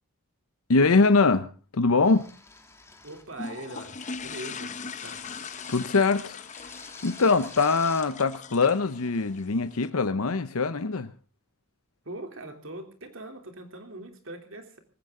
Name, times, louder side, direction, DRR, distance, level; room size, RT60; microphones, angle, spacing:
voice 1, 0.7-2.3 5.7-6.5 7.0-11.1, left 4 dB, 85° left, 10 dB, 0.8 m, -23 dB
sound 1, 2.0-3.4 4.0-4.3 5.0-6.0 6.4-8.1, left 3 dB, 15° left, 2.2 m, -48 dB
voice 2, 3.0-5.2 12.0-14.8, right 1 dB, 65° right, 5 dB, 3.2 m, -41 dB
sound 2, 3.3-9.9, left 5 dB, 35° left, 0.8 m, -40 dB
19.5 x 16.0 x 3.8 m, 0.39 s
head